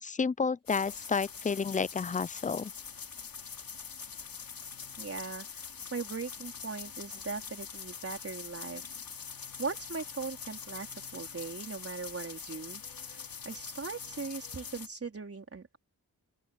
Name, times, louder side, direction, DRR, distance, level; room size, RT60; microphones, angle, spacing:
voice 1, 0.0-2.7, left 5 dB, 20° left, 0.4 m, -31 dB
sound 1, 0.7-14.9, left 6 dB, 75° left, 2.6 m, -44 dB
voice 2, 5.0-8.8 9.6-12.8 13.4-15.8, right 4 dB, 40° right, 4.2 m, -39 dB
open air
wide cardioid pair, 150°, 35 cm